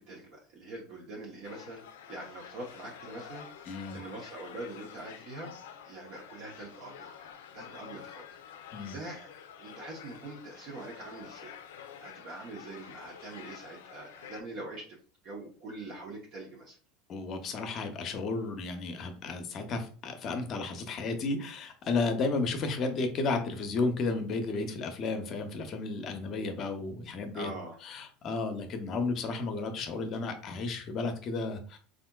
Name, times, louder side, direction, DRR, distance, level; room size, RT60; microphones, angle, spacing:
voice 1, 0.0-1.8 2.1-3.5 3.9-5.5 5.8-7.3 7.5-8.2 8.9-9.3 9.6-11.5 12.0-15.0 15.2-16.8 27.3-27.8, right 2 dB, 55° right, -2 dB, 0.8 m, -43 dB
sound 1, 1.4-14.4, left 8 dB, 85° left, 0.4 m, -49 dB
voice 2, 3.7-4.0 8.7-8.9 17.1-27.5 27.8-31.8, left 3 dB, 45° left, 7 dB, 0.6 m, -33 dB
3.5 x 2.5 x 2.2 m, 0.42 s
supercardioid pair, 110°, 0 cm